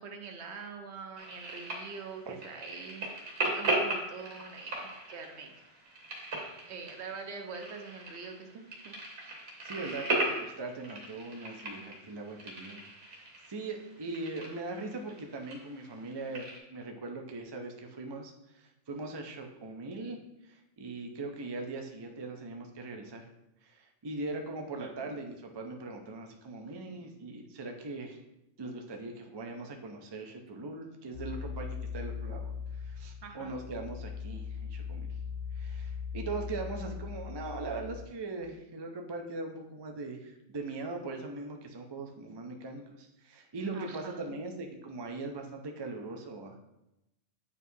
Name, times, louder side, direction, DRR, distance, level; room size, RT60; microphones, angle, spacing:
voice 1, 0.0-5.6 6.2-6.3 6.7-9.3 24.8-25.2 33.2-33.6 43.7-44.4, right 5 dB, 65° right, 4 dB, 1.0 m, -45 dB
sound 1, 1.2-16.6, right 2 dB, 90° right, 1.7 m, -38 dB
voice 2, 9.7-12.8 13.1-18.3 18.9-20.2 20.5-23.2 23.6-28.2 28.6-32.5 32.8-35.1 35.6-46.6, right 3 dB, 40° right, 2 dB, 0.3 m, -40 dB
sound 2, 31.1-38.1, left 6 dB, 55° left, 0.9 m, -39 dB
8.3 x 4.6 x 2.7 m, 0.89 s
omnidirectional pair, 1.3 m